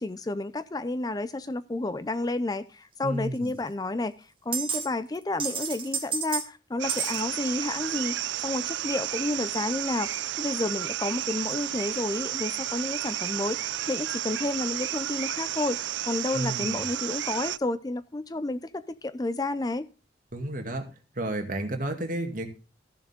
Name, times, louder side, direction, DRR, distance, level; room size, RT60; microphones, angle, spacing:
voice 1, 0.0-8.2 8.4-15.8 16.0-19.9, left 2 dB, 20° left, 0.4 m, -31 dB
voice 2, 3.0-3.5 16.3-16.8 20.3-20.9 21.2-22.5, right 1 dB, 45° right, 2.2 m, -31 dB
sound 1, 3.5-3.6 4.5-4.9 5.1-6.5 6.9-7.2, right 6 dB, 30° right, 1.9 m, -30 dB
sound 2, 6.8-17.6, right 13 dB, 80° right, 0.4 m, -32 dB
15.0 x 7.1 x 3.6 m
head